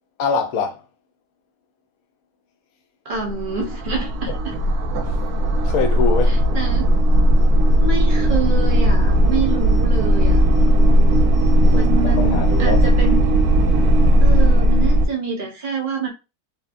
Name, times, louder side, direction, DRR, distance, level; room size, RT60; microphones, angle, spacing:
voice 1, 0.2-0.8 4.3-4.4 5.0-5.2 5.6-6.4 11.7-12.8, left 5 dB, 75° left, 1.0 m, -24 dB
voice 2, 3.0-4.3 6.3-6.9 7.8-10.4 11.7-13.2 14.2-16.1, right 4 dB, 45° right, 0.7 m, -26 dB
sound 1, 3.2-15.1, right 1 dB, 80° right, 1.1 m, -16 dB
3.2 x 2.1 x 2.4 m
omnidirectional pair, 1.6 m